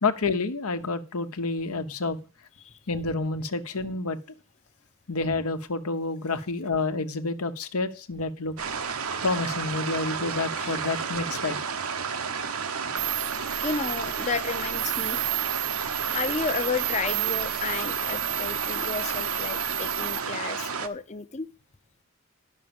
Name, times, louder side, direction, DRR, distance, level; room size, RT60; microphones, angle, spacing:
voice 1, 0.0-2.2 2.9-4.2 5.1-8.6 9.2-11.6, left 3 dB, 85° left, 1.0 m, -29 dB
sound 1, 8.6-20.9, right 6 dB, 80° right, 1.0 m, -32 dB
sound 2, 13.0-20.2, right 12 dB, 50° right, 0.6 m, -32 dB
voice 2, 13.6-15.2 16.0-21.5, left 4 dB, 30° left, 0.6 m, -32 dB
10.5 x 6.3 x 7.0 m
head